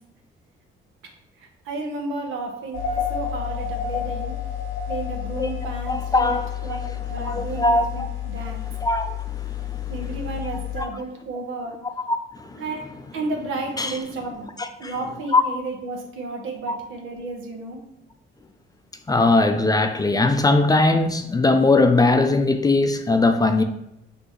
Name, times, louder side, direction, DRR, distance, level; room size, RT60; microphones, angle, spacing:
voice 1, 1.7-2.8 3.1-4.3 4.9-8.7 9.9-11.8 12.6-12.9 13.1-14.5 14.8-17.8, right 3 dB, 85° right, 3 dB, 0.9 m, -32 dB
sound 1, 2.7-10.8, left 9 dB, 85° left, 1.0 m, -30 dB
voice 2, 5.9-6.8 7.2-8.1 8.8-10.0 10.8-10.9 11.8-12.6 13.8-14.0 14.6-14.9 15.3-15.4 16.7-16.8 19.1-23.6, left 2 dB, 20° left, 7 dB, 0.4 m, -20 dB
6.0 x 2.8 x 3.1 m, 0.84 s
cardioid pair, 90°, 20 cm